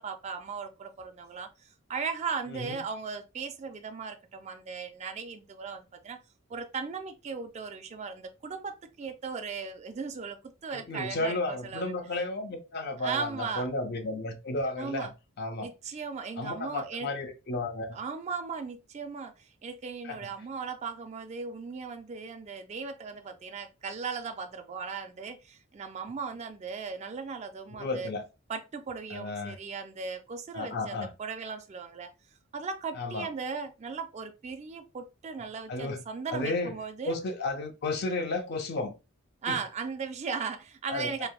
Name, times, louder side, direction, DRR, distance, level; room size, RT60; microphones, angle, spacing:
voice 1, 0.0-6.2 6.5-11.9 13.0-13.7 14.8-15.1 15.6-17.1 17.9-28.1 28.5-32.1 32.5-37.1 39.4-41.3, right 5 dB, 35° right, 0.3 m, -37 dB
voice 2, 10.7-15.1 15.4-15.7 16.4-18.0 20.0-20.2 27.8-28.2 29.1-29.6 30.5-31.1 32.9-33.3 35.7-36.0 36.3-36.7 37.0-38.9 39.5-39.6 40.9-41.3, left 2 dB, 50° left, 0.5 m, -33 dB
3.3 x 2.2 x 2.3 m
head